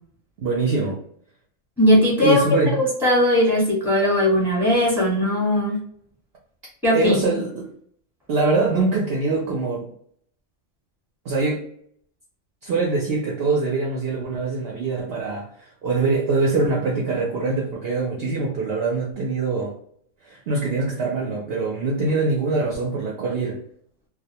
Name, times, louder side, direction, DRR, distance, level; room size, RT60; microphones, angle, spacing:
voice 1, 0.4-1.0 2.2-2.7 6.9-7.7 8.3-9.9 11.3-11.7 12.6-19.7 20.3-23.6, right 3 dB, 60° right, 0.7 m, -23 dB
voice 2, 1.8-5.8 6.8-7.2, left 1 dB, ahead, 0.9 m, -19 dB
2.3 x 2.1 x 2.7 m
omnidirectional pair, 1.4 m